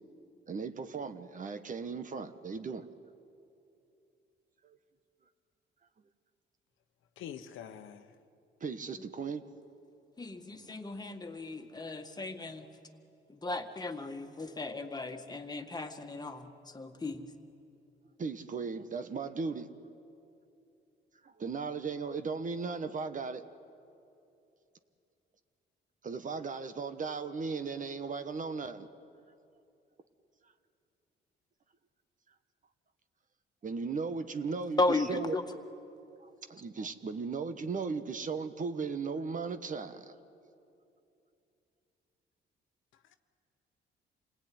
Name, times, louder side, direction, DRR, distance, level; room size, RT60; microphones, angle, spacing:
voice 1, 0.5-2.9 4.6-4.8 8.6-9.4 18.2-19.7 21.2-23.4 26.0-28.9 33.6-35.4 36.2-40.1, right 4 dB, 40° right, 10 dB, 1.3 m, -37 dB
voice 2, 7.2-8.0, left 9 dB, 80° left, 8 dB, 1.2 m, -44 dB
voice 3, 10.2-12.7 13.3-16.5 16.7-17.2 34.8-35.4, left 2 dB, 20° left, 5 dB, 1.9 m, -35 dB
27.5 x 19.0 x 9.6 m, 2.7 s
cardioid pair, 90°, 20 cm